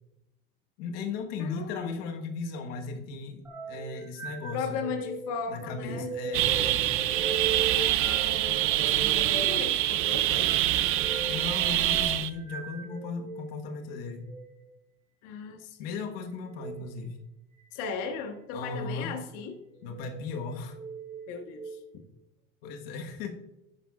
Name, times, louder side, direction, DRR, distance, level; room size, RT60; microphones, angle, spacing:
voice 1, 0.8-4.8 5.5-7.0 11.3-14.3 15.8-17.2 18.5-19.1 19.8-20.8 22.6-23.3, left 4 dB, 85° left, 3 dB, 1.4 m, -36 dB
voice 2, 1.4-2.0 4.5-6.1 8.0-10.5 15.2-15.9 17.7-19.6 21.3-21.8, left 5 dB, 65° left, 4 dB, 1.3 m, -37 dB
sound 1, 3.4-13.4 14.1-14.4 16.4-16.7 17.6-18.1 18.6-18.9 19.7-20.2 20.7-21.7, right 4 dB, 5° right, 2.0 m, -39 dB
sound 2, 6.3-12.3, right 14 dB, 45° right, 0.5 m, -25 dB
11.0 x 8.8 x 2.4 m, 0.94 s
cardioid pair, 150°, 30 cm